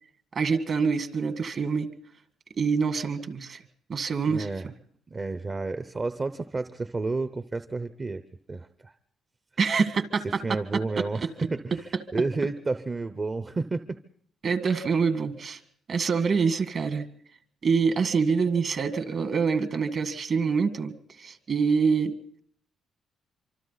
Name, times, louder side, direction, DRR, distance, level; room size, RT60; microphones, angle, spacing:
voice 1, 0.3-1.9 2.6-3.6 3.9-4.7 9.6-10.2 11.0-11.1 14.4-15.6 15.9-17.0 17.6-20.9 21.2-22.4, right 5 dB, 50° right, 9 dB, 1.8 m, -25 dB
voice 2, 4.3-4.7 5.1-8.2 8.5-8.9 10.2-14.0, right 3 dB, 30° right, 10 dB, 0.9 m, -31 dB
26.0 x 25.0 x 4.1 m, 0.63 s
cardioid pair, 90°, 0 cm